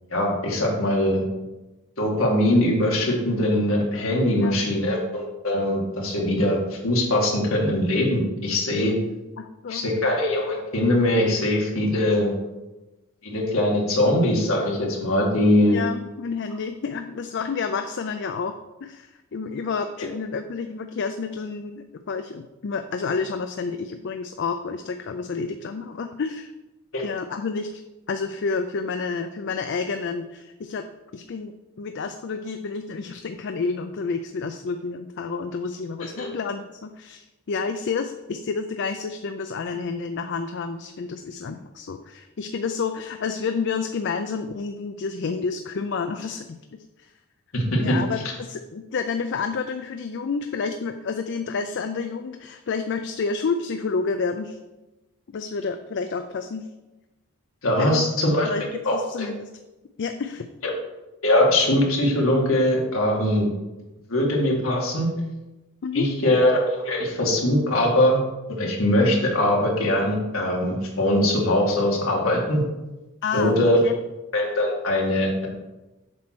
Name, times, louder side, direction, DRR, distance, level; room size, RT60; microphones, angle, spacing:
voice 1, 0.1-1.2 2.0-9.0 9.7-12.3 13.2-15.8 26.9-27.0 36.2-36.3 47.5-48.0 57.6-58.5 58.8-59.3 61.2-63.5 64.1-65.1 65.9-68.2 68.6-72.6 73.3-73.8 74.3-75.5, left 1 dB, 70° left, -2 dB, 2.1 m, -21 dB
voice 2, 4.3-4.7 9.4-9.8 15.7-18.5 18.8-26.5 27.0-27.8 28.1-30.8 31.1-46.5 47.0-47.1 47.8-54.6 55.3-56.7 57.8-58.1 58.4-59.5 60.0-60.5 65.8-66.1 73.2-73.6 73.8-73.9, left 5 dB, 55° left, 8 dB, 0.4 m, -29 dB
7.5 x 4.4 x 6.1 m, 1.0 s
head